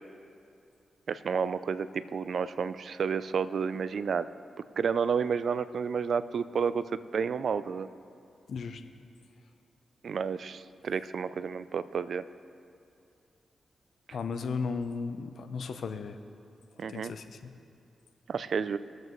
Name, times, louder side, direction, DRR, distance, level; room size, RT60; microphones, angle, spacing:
voice 1, 1.1-4.3 4.8-7.9 10.0-12.2 16.8-17.1 18.3-18.8, right 6 dB, 70° right, 14 dB, 0.4 m, -31 dB
voice 2, 8.5-8.8 14.1-16.2 16.9-17.5, left 5 dB, 75° left, 8 dB, 0.7 m, -35 dB
21.0 x 7.7 x 3.1 m, 2.5 s
cardioid pair, 60°, 0 cm